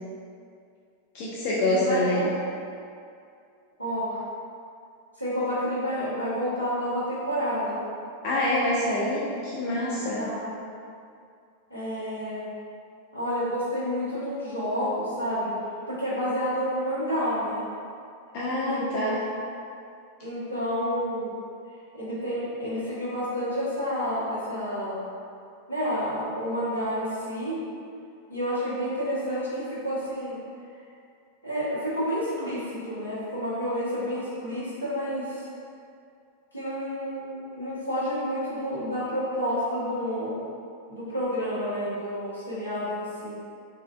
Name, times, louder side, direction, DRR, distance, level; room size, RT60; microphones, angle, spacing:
voice 1, 1.1-2.3 8.2-10.2 18.3-19.2, left 1 dB, 45° left, -7 dB, 0.4 m, -26 dB
voice 2, 1.7-2.3 3.8-4.2 5.2-7.8 10.0-10.6 11.7-12.4 13.1-15.5 15.9-17.7 18.6-19.2 20.2-21.3 21.9-25.0 25.7-27.6 28.3-30.4 31.4-35.4 36.5-40.4 40.9-43.3, equal, 85° left, -10 dB, 0.9 m, -29 dB
3.0 x 2.4 x 2.2 m, 2.4 s
figure-of-eight pair, 90°, 0 cm